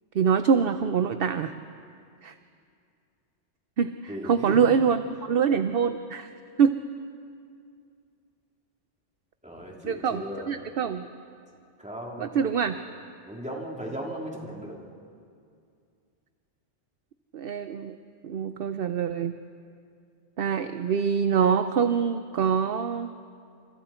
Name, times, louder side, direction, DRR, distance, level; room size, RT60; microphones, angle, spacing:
voice 1, 0.1-1.5 2.2-2.3 3.8-6.3 6.6-6.8 9.8-11.1 12.2-12.8 17.3-18.0 18.2-19.4 20.4-23.1, right 7 dB, 55° right, 9 dB, 0.8 m, -25 dB
voice 2, 4.1-4.6 9.4-10.5 11.8-12.4 13.3-14.8, equal, 5° right, -3 dB, 3.5 m, -37 dB
29.5 x 27.5 x 4.4 m, 2.4 s
omnidirectional pair, 1.3 m